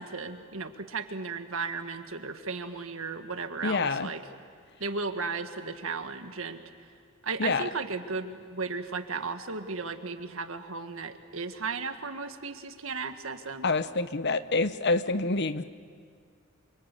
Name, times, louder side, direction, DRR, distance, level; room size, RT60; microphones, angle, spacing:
voice 1, 0.0-4.2 4.8-6.6 7.2-13.7, right 4 dB, 80° right, 7 dB, 1.7 m, -35 dB
voice 2, 3.6-4.1 7.4-7.7 13.6-15.6, left 3 dB, 55° left, 12 dB, 0.9 m, -27 dB
28.0 x 25.0 x 8.4 m, 2.1 s
head